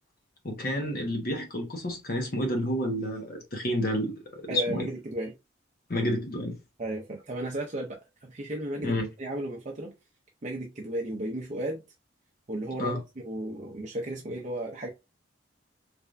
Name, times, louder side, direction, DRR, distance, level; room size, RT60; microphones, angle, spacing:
voice 1, 0.4-4.8 5.9-6.6 8.8-9.1 12.8-13.0, equal, 45° left, 1.0 m, -30 dB
voice 2, 4.5-5.3 6.8-9.9 10.4-11.8 12.5-14.9, right 1 dB, 35° right, 0.5 m, -34 dB
3.3 x 3.3 x 2.5 m
head